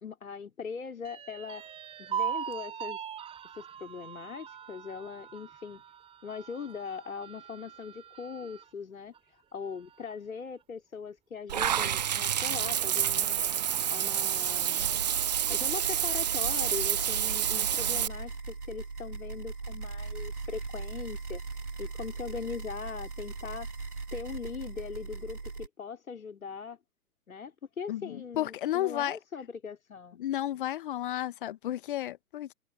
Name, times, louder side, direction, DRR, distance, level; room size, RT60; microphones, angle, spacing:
voice 1, 0.0-1.6 2.0-3.0 3.5-5.8 6.2-13.4 13.9-15.0 15.5-21.4 21.8-23.7 24.1-26.8 27.3-30.2, left 6 dB, 60° left, 4.9 m, -40 dB
sound 1, 1.0-8.7 9.1-9.2 9.6-10.3, right 8 dB, 10° right, 4.8 m, -40 dB
Water / Bathtub (filling or washing), 11.5-18.1, right 10 dB, 30° right, 0.6 m, -28 dB
sound 2, 14.8-25.7, right 4 dB, 75° right, 3.0 m, -39 dB
voice 2, 27.9-29.2 30.2-32.5, left 13 dB, 35° left, 1.7 m, -32 dB
figure-of-eight pair, 125°, 45 cm